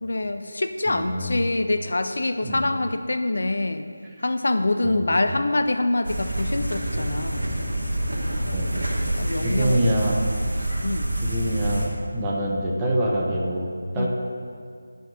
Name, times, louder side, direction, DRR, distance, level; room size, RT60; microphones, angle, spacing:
voice 1, 0.0-3.9 4.2-7.4 9.2-10.1 10.8-11.1 13.9-14.1, left 2 dB, 60° left, 8 dB, 0.5 m, -25 dB
voice 2, 0.9-1.6 2.4-2.7 4.8-5.4 8.5-9.0 9.4-10.2 11.2-11.9 12.1-14.1, right 1 dB, 10° right, -4 dB, 1.1 m, -26 dB
sound 1, 6.0-11.9, right 1 dB, 65° right, 2.6 m, -27 dB
9.1 x 5.3 x 7.7 m, 2.1 s
figure-of-eight pair, 160°, 0 cm